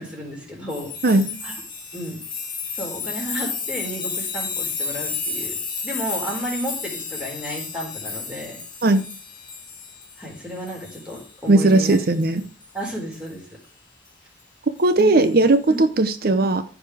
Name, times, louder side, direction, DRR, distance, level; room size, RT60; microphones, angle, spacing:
voice 1, 0.0-0.9 1.4-1.5 1.9-2.2 2.7-5.6 5.8-8.6 10.2-12.0 12.7-13.4 15.2-15.4 15.7-15.8, equal, 5° right, -2 dB, 4.2 m, -32 dB
sound 1, 0.7-11.4 11.7-12.7 13.1-13.3 15.0-15.2, left 4 dB, 25° left, 2.6 m, -32 dB
voice 2, 1.0-1.4 8.8-9.0 11.5-12.4 14.8-16.6, right 2 dB, 55° right, 10 dB, 0.7 m, -17 dB
14.5 x 5.0 x 4.9 m, 0.37 s
head